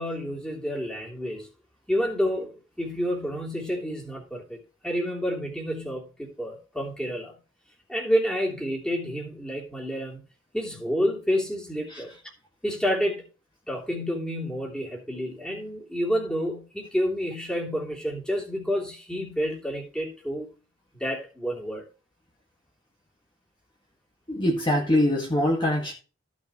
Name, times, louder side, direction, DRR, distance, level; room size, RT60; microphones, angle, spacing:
voice 1, 0.0-1.5 1.9-7.3 7.9-10.2 10.5-12.1 12.6-13.3 13.7-20.5 20.9-21.8, equal, 5° left, 3.0 m, -29 dB
voice 2, 24.3-25.9, left 1 dB, 25° left, 1.9 m, -23 dB
15.0 x 6.3 x 3.1 m
head